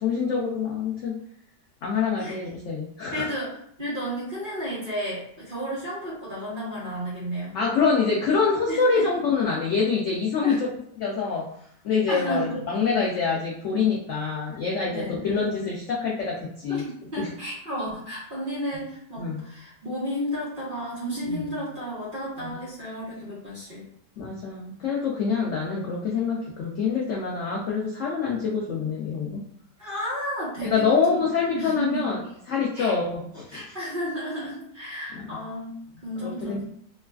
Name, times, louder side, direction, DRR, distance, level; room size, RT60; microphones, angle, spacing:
voice 1, 0.0-1.1 1.8-3.3 7.5-10.7 11.0-11.5 11.8-16.8 17.2-17.3 19.2-19.4 21.2-21.5 22.4-22.5 24.2-29.4 30.6-33.7 35.1-35.4 36.2-36.6, left 5 dB, 85° left, -3 dB, 0.6 m, -26 dB
voice 2, 3.1-3.5 3.8-7.6 8.7-9.1 10.4-10.6 12.1-12.6 14.9-15.2 16.7-23.8 29.8-31.2 31.5-32.1 32.7-33.0 33.5-35.7 36.0-36.6, equal, 35° right, -8 dB, 0.9 m, -32 dB
3.0 x 2.3 x 2.3 m, 0.67 s
omnidirectional pair, 1.8 m